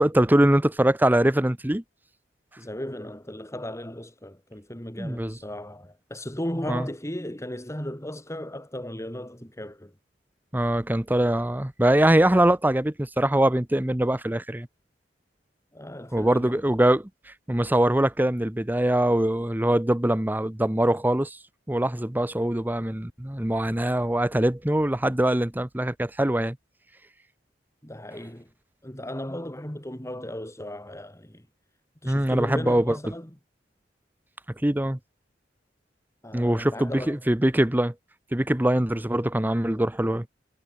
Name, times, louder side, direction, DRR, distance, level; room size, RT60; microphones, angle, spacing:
voice 1, 0.0-1.8 5.0-5.4 6.7-6.9 10.5-14.7 16.1-17.1 17.5-21.4 21.7-26.6 32.1-33.0 34.6-35.0 36.3-37.9 38.3-40.3, right 1 dB, 10° right, 0.8 m, -23 dB
voice 2, 2.6-9.9 15.7-16.6 27.8-28.5 28.8-31.5 32.0-33.3 36.2-37.2 39.7-39.8, left 1 dB, 15° left, 4.6 m, -36 dB
head